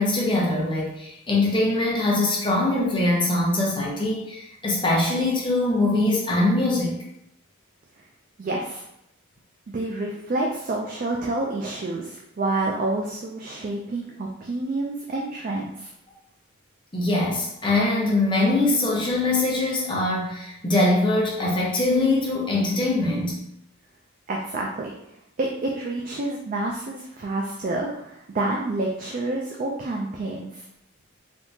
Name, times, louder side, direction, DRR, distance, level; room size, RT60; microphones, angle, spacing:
voice 1, 0.0-7.0 16.9-23.4, left 2 dB, 20° left, -4 dB, 0.8 m, -22 dB
voice 2, 8.4-8.9 9.7-15.9 24.3-24.9 25.4-30.6, right 2 dB, 40° right, -1 dB, 0.3 m, -28 dB
3.5 x 2.7 x 2.7 m, 0.79 s
head